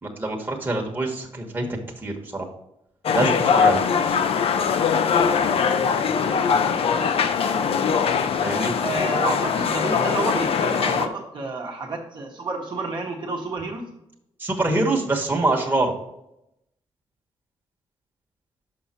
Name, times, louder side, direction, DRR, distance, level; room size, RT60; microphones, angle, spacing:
voice 1, 0.0-1.7 2.0-2.5 3.1-4.2 8.4-8.7 14.4-15.9, right 2 dB, 20° right, 0 dB, 1.3 m, -25 dB
sound 1, 3.1-11.1, left 6 dB, 60° left, 0.6 m, -21 dB
voice 2, 8.8-13.9, right 3 dB, 45° right, 0 dB, 1.1 m, -30 dB
6.4 x 5.5 x 4.3 m, 0.84 s
cardioid pair, 105°, 11 cm